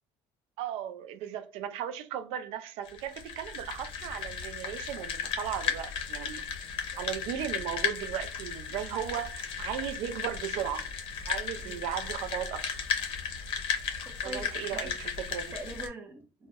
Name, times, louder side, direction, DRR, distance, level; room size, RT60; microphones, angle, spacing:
voice 1, 0.6-6.4 6.7-10.9 11.3-12.7 14.2-15.5, right 10 dB, 75° right, 0.4 m, -36 dB
sound 1, 2.8-15.9, left 7 dB, 65° left, 0.6 m, -35 dB
voice 2, 14.0-14.9 15.5-16.5, right 2 dB, 20° right, 0.5 m, -43 dB
2.2 x 2.0 x 2.7 m
cardioid pair, 135°, 10 cm